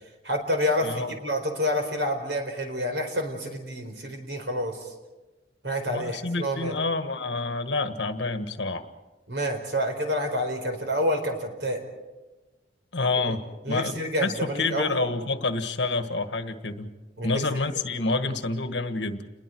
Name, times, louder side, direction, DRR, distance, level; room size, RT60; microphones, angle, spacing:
voice 1, 0.2-4.9 5.6-6.8 9.3-11.8 13.3-13.4 13.6-15.0 17.2-17.4, equal, 70° right, 4 dB, 4.4 m, -28 dB
voice 2, 0.8-1.1 5.9-8.9 12.9-16.9 17.2-19.3, left 3 dB, 70° left, 9 dB, 1.6 m, -28 dB
29.5 x 21.5 x 4.6 m, 1.2 s
head